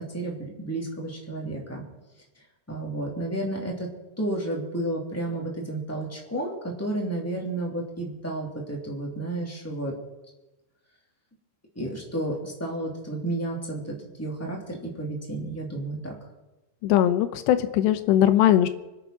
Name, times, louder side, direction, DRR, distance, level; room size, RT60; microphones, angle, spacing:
voice 1, 0.0-1.8 2.7-3.9 4.2-9.9 11.7-16.1, right 1 dB, 5° left, -1 dB, 2.1 m, -31 dB
voice 2, 16.8-18.7, left 12 dB, 85° left, 9 dB, 3.0 m, -20 dB
25.0 x 8.3 x 5.9 m, 1.0 s
omnidirectional pair, 4.9 m